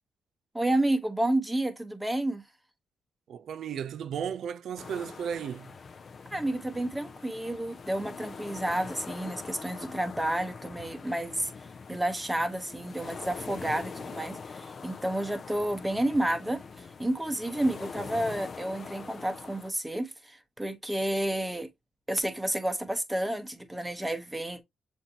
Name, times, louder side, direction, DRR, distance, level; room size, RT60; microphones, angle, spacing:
voice 1, 0.5-2.4 6.3-11.5 11.9-21.7 22.1-24.6, right 1 dB, 5° right, 0.9 m, -30 dB
voice 2, 3.3-5.7, right 8 dB, 65° right, 0.3 m, -35 dB
sound 1, 4.8-19.7, left 5 dB, 40° left, 0.5 m, -43 dB
7.2 x 2.6 x 2.7 m
cardioid pair, 105°, 0 cm